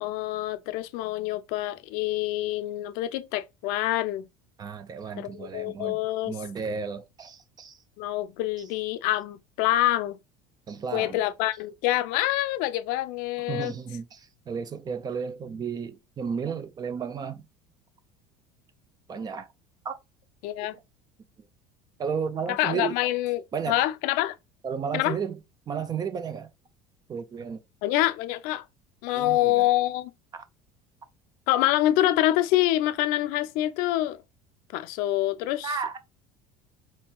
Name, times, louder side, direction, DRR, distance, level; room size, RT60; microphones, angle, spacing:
voice 1, 0.0-4.3 5.2-6.3 8.0-10.2 10.9-13.7 20.4-20.7 22.5-24.3 24.9-25.2 27.8-28.6 29.0-30.1 31.5-34.2 34.7-35.7, left 15 dB, 65° left, 0.4 m, -26 dB
voice 2, 4.6-6.0 6.3-7.8 10.7-11.2 13.5-17.5 19.1-19.5 19.8-20.0 20.6-20.7 22.0-23.0 23.5-23.8 24.6-25.4 25.7-26.5 27.1-27.6 29.1-29.6 30.3-30.4 35.6-36.0, right 6 dB, 25° right, 0.5 m, -33 dB
4.4 x 2.9 x 2.2 m
cardioid pair, 135°, 16 cm